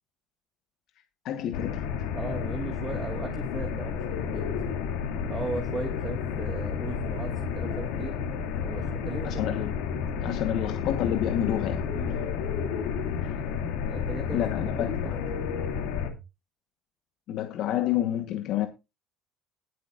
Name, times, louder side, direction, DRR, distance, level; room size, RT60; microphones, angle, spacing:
voice 1, 1.2-1.9 9.2-9.7 10.2-12.3 13.2-13.4 14.3-15.2 17.3-18.7, left 11 dB, 60° left, 1.1 m, -29 dB
sound 1, 1.5-16.1, left 7 dB, 90° left, 2.4 m, -31 dB
voice 2, 2.1-4.5 5.3-8.1 8.6-9.5 11.9-12.2 13.9-14.4 14.8-15.1, right 3 dB, 20° right, 1.7 m, -37 dB
sound 2, 2.6-16.2, right 4 dB, 45° left, 3.9 m, -49 dB
19.5 x 8.1 x 2.5 m
cardioid pair, 135°, 0 cm